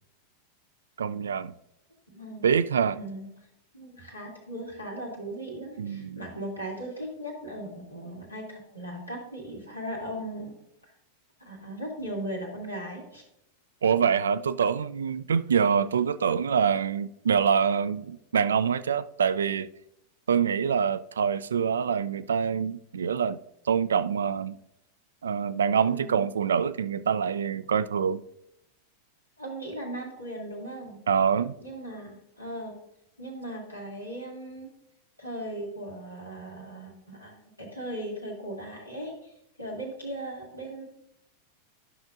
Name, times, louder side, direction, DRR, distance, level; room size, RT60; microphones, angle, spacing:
voice 1, 1.0-1.5 2.4-3.0 5.8-6.2 13.8-19.7 20.3-23.4 23.7-24.6 25.2-28.2 31.1-31.5, right 7 dB, 70° right, 0.3 m, -25 dB
voice 2, 2.1-2.5 2.9-3.3 3.7-10.6 10.8-10.9 11.4-13.2 25.8-26.3 29.4-31.0 31.6-32.8 33.2-34.7 35.2-40.8, right 1 dB, 90° left, 2.1 m, -38 dB
12.5 x 6.0 x 2.5 m
figure-of-eight pair, 90°, 0 cm